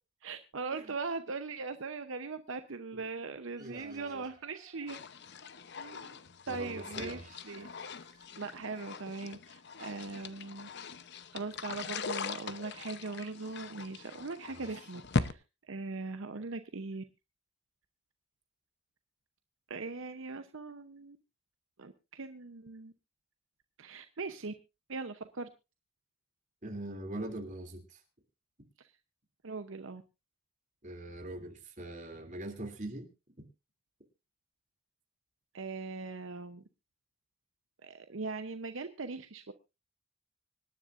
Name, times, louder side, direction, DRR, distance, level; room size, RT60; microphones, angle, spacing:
voice 1, 0.2-5.0 5.7-6.2 6.5-7.7 8.4-10.7 11.3-17.0 19.7-21.2 21.8-22.9 23.8-24.5 24.9-25.5 28.8-28.9 29.4-30.0 35.5-36.6 37.8-39.5, right 4 dB, 65° right, 9 dB, 0.8 m, -40 dB
sound 1, 3.6-5.9 6.2-7.1 7.4-8.9, right 4 dB, 20° right, 5.0 m, -65 dB
voice 2, 3.6-4.3 6.5-7.4 14.4-14.7 26.6-28.0 30.8-33.1, right 1 dB, 35° right, 3 dB, 2.9 m, -42 dB
sound 2, 4.9-15.3, left 4 dB, 50° left, 0.8 m, -40 dB
25.5 x 10.0 x 2.5 m, 0.28 s
head